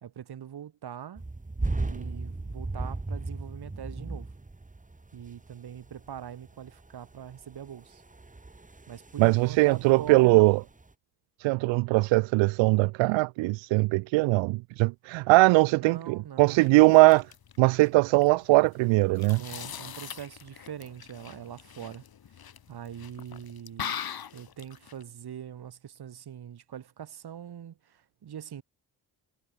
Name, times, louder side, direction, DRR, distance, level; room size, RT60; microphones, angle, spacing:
voice 1, 0.0-1.2 1.7-4.3 5.1-8.0 8.9-10.5 15.7-16.6 19.4-22.0 22.7-24.0 24.3-28.6, right 9 dB, 60° right, 2.7 m, -42 dB
sound 1, 1.2-10.9, right 2 dB, 15° right, 2.4 m, -37 dB
voice 2, 9.2-10.6 11.4-17.3 17.6-19.4, right 23 dB, 80° right, 0.7 m, -21 dB
sound 2, 16.4-25.0, left 8 dB, 55° left, 2.4 m, -42 dB
supercardioid pair, 50°, 44 cm